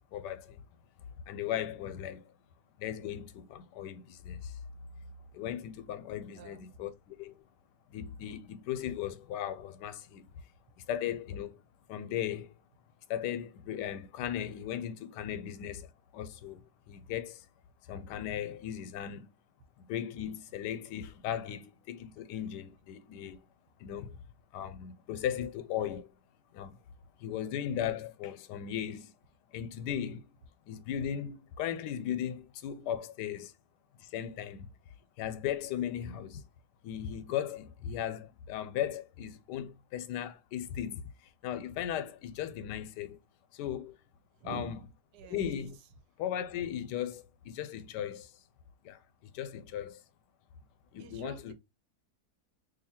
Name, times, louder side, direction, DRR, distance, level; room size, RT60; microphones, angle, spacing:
voice 1, 0.1-0.6 1.3-2.2 2.8-4.6 5.3-7.3 7.9-10.3 10.9-11.6 11.9-12.5 13.1-17.4 17.9-19.3 19.8-23.4 23.8-24.2 24.5-26.1 26.5-26.8 27.2-29.1 29.5-30.3 30.7-33.5 34.0-34.7 35.2-36.4 36.8-41.1 41.4-43.2 43.5-44.0 44.4-44.8 45.3-45.8 46.2-48.3 48.8-50.0 50.9-51.5, left 10 dB, 85° left, 1.2 m, -37 dB
voice 2, 6.3-6.7 44.4-44.8 45.1-45.5 51.0-51.5, right 6 dB, 75° right, 1.2 m, -45 dB
2.7 x 2.7 x 4.1 m
omnidirectional pair, 1.8 m